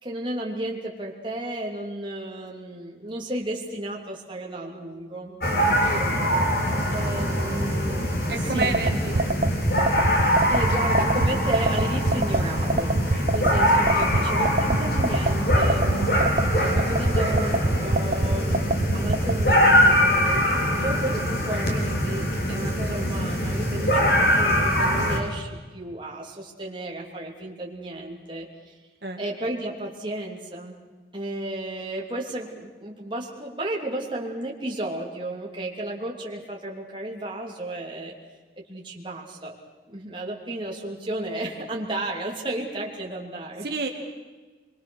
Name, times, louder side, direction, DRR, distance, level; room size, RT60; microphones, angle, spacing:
voice 1, 0.0-6.1 6.9-8.0 8.5-9.0 10.5-16.3 16.6-18.6 18.9-20.4 20.8-28.8 29.2-30.7 31.1-38.1 38.6-39.5 39.9-43.7, right 1 dB, 25° right, -2 dB, 3.1 m, -33 dB
sound 1, 5.4-25.2, equal, 55° left, 3.4 m, -23 dB
voice 2, 8.3-9.4 13.4-13.9 20.7-20.9 29.0-29.2 43.6-43.9, right 3 dB, 65° right, 1 dB, 2.1 m, -31 dB
sound 2, 8.6-19.5, right 2 dB, 45° right, 0.6 m, -23 dB
25.0 x 23.0 x 6.5 m, 1.3 s
head